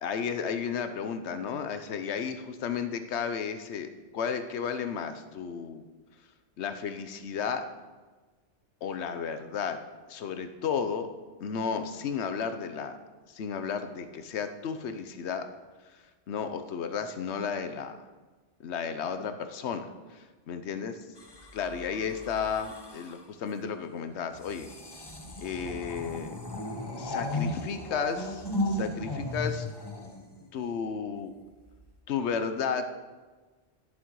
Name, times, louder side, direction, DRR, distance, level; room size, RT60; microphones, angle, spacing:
voice 1, 0.0-5.8 6.6-7.6 8.8-9.8 10.1-11.1 11.4-13.0 13.3-15.4 16.3-18.0 18.6-20.9 21.5-24.7 25.4-26.3 27.0-29.7 30.5-31.3 32.1-32.9, left 6 dB, 70° left, 9 dB, 1.1 m, -33 dB
sound 1, 21.2-23.3 24.3-30.8 31.7-32.0, left 1 dB, 20° left, 1.1 m, -36 dB
11.5 x 10.0 x 4.7 m, 1.3 s
omnidirectional pair, 1.2 m